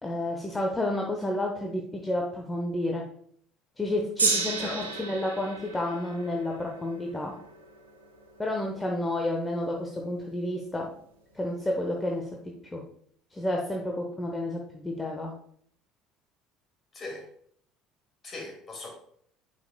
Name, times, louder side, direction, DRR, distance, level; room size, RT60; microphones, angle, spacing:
voice 1, 0.0-3.0 3.8-7.3 8.4-10.9 11.3-12.2 12.7-12.8 13.3-15.3, left 1 dB, 15° left, 0 dB, 0.9 m, -30 dB
Gong, 4.2-10.5 11.3-11.4, right 4 dB, 80° right, 0.9 m, -34 dB
voice 2, 4.6-5.1 16.9-17.3 18.2-18.9, left 2 dB, 35° left, 1 dB, 2.2 m, -39 dB
9.4 x 5.2 x 2.2 m, 0.63 s
figure-of-eight pair, 60°, 0 cm